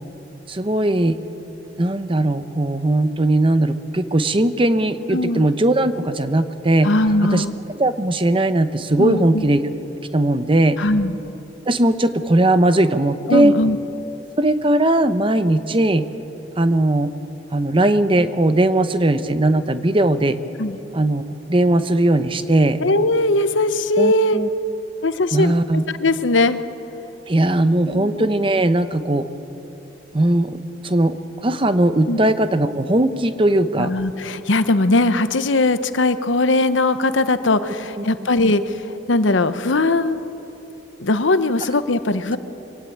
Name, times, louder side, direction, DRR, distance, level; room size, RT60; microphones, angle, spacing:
voice 1, 0.5-1.2 1.8-6.9 7.2-7.4 7.8-9.7 10.1-10.8 11.7-13.6 14.4-16.1 16.6-17.1 17.5-20.4 20.9-21.2 21.5-22.8 24.0-24.5 25.3-25.8 27.3-29.3 30.1-31.1 31.4-33.9, right 1 dB, 30° right, 11 dB, 0.8 m, -18 dB
voice 2, 5.1-5.5 6.8-7.6 9.0-9.5 10.8-11.2 13.3-13.8 20.6-20.8 22.8-24.4 25.0-26.6 27.9-28.3 32.1-32.2 33.8-40.2 41.0-42.4, left 2 dB, 80° left, 12 dB, 0.9 m, -20 dB
23.5 x 17.0 x 8.7 m, 2.9 s
head